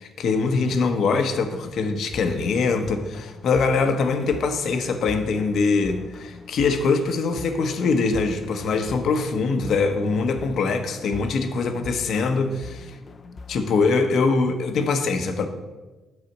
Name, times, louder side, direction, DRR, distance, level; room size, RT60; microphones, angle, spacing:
voice 1, 0.2-12.9 13.5-15.5, left 4 dB, 65° left, 7 dB, 1.0 m, -23 dB
sound 1, 2.1-14.1, left 3 dB, 40° left, 0.6 m, -41 dB
9.6 x 4.1 x 7.2 m, 1.2 s
cardioid pair, 90°, 0 cm